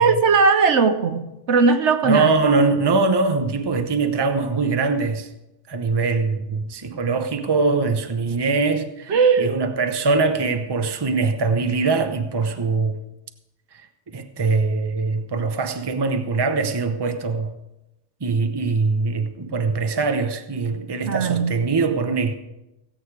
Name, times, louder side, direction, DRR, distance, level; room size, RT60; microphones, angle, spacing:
voice 1, 0.0-2.3 9.1-9.6 21.1-21.5, right 5 dB, 70° right, 1.2 m, -18 dB
voice 2, 2.0-5.3 5.7-13.0 14.1-17.5 18.2-22.3, right 4 dB, 25° right, 0.8 m, -22 dB
17.0 x 8.7 x 4.8 m
omnidirectional pair, 1.3 m